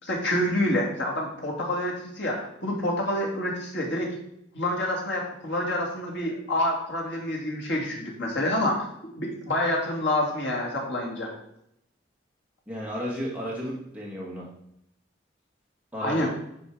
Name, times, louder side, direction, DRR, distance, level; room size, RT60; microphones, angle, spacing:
voice 1, 0.0-4.1 4.5-11.3 16.0-16.3, left 1 dB, 75° left, -2 dB, 2.7 m, -27 dB
voice 2, 12.7-14.5 15.9-16.3, equal, 5° right, -5 dB, 1.6 m, -33 dB
10.5 x 4.6 x 4.9 m, 0.77 s
head